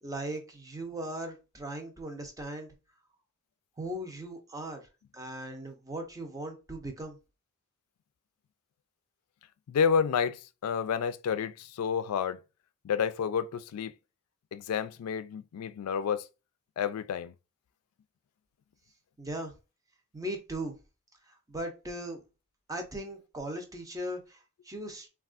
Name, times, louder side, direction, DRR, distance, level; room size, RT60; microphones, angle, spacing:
voice 1, 0.0-2.7 3.8-4.9 5.1-7.2 19.2-19.5 20.1-20.7 21.5-22.2 22.7-24.4 24.6-25.1, right 1 dB, 15° right, 0.7 m, -38 dB
voice 2, 9.7-12.4 12.8-13.9 14.5-16.3 16.8-17.3, left 7 dB, 85° left, 0.3 m, -30 dB
3.4 x 2.3 x 2.4 m
head